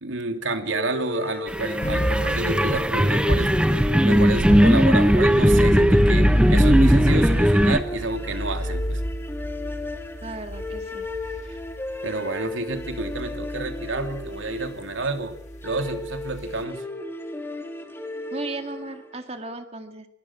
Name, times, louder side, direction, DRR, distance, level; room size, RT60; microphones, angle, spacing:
voice 1, 0.0-3.5 4.0-9.0 12.0-15.3 15.6-16.8, right 3 dB, 85° right, 6 dB, 2.9 m, -29 dB
sound 1, 0.7-19.2, left 2 dB, 10° left, 2.9 m, -35 dB
sound 2, 1.5-7.8, equal, 5° right, 0.8 m, -18 dB
sound 3, 1.8-2.7 3.2-3.9 4.4-12.0 12.7-16.6, equal, 35° left, 1.4 m, -28 dB
voice 2, 10.2-11.1 18.3-20.1, right 2 dB, 30° right, 7 dB, 2.0 m, -35 dB
24.0 x 21.0 x 6.2 m, 0.66 s
head